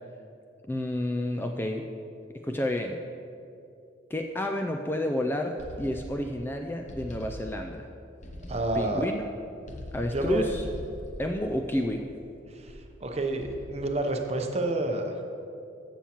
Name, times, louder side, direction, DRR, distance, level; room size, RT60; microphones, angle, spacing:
voice 1, 0.7-1.8 2.4-3.0 4.1-7.9 8.7-9.2 9.9-10.6 11.2-12.0, left 1 dB, 10° left, 4 dB, 0.3 m, -30 dB
sound 1, 5.6-6.4 6.9-7.8 8.2-9.0 9.7-12.2 12.7-13.0 13.4-13.9, equal, 40° left, 0.9 m, -41 dB
voice 2, 8.5-9.1 10.1-10.5 12.5-15.2, right 2 dB, 35° right, 4 dB, 0.7 m, -29 dB
14.0 x 7.2 x 3.0 m, 2.6 s
head